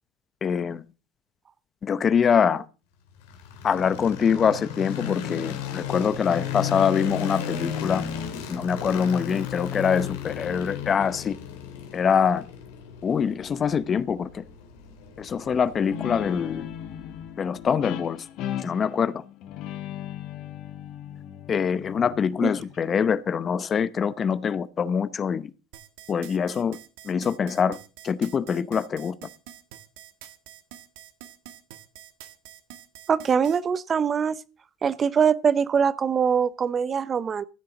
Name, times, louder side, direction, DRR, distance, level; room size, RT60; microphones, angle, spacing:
voice 1, 0.4-0.8 1.8-2.6 3.6-8.1 8.5-11.4 11.9-12.4 13.0-14.4 15.2-16.7 17.4-18.2 18.6-19.2 21.5-25.5 26.1-26.8 27.0-27.8 28.0-29.2, left 7 dB, 35° left, 0.7 m, -24 dB
sound 1, 3.2-17.3, left 9 dB, 80° left, 2.2 m, -35 dB
Guitar, 15.9-23.0, left 10 dB, 60° left, 1.3 m, -37 dB
sound 2, 25.7-33.6, right 12 dB, 75° right, 1.4 m, -46 dB
voice 2, 33.1-34.4 34.8-37.4, right 7 dB, 30° right, 0.6 m, -23 dB
14.5 x 7.6 x 3.8 m
supercardioid pair, 95°, 0 cm